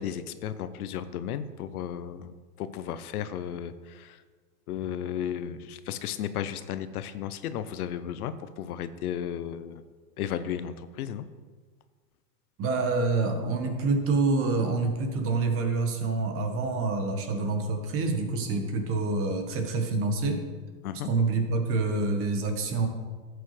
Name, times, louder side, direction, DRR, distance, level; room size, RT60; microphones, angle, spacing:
voice 1, 0.0-4.2 4.7-9.8 10.2-11.3 20.8-21.1, left 9 dB, 65° left, 12 dB, 0.8 m, -34 dB
voice 2, 12.6-20.5 21.0-22.9, right 3 dB, 25° right, 5 dB, 1.3 m, -27 dB
12.5 x 8.2 x 3.3 m, 1.5 s
hypercardioid pair, 130°, 48 cm